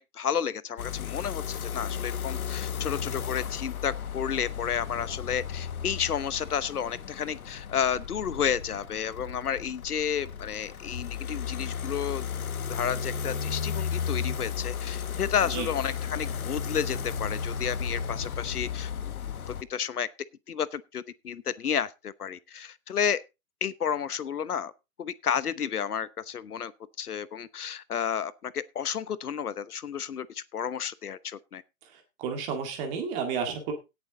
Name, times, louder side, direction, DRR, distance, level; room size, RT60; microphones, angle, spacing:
voice 1, 0.0-12.3 12.7-19.1 19.5-20.1 20.5-23.2 23.6-24.7 25.0-26.7 27.0-31.6, left 8 dB, 90° left, 1.1 m, -31 dB
sound 1, 0.8-19.6, left 7 dB, 70° left, 1.3 m, -34 dB
voice 2, 32.2-33.7, right 6 dB, 15° right, 1.9 m, -31 dB
17.5 x 7.1 x 3.8 m
hypercardioid pair, 165°, 44 cm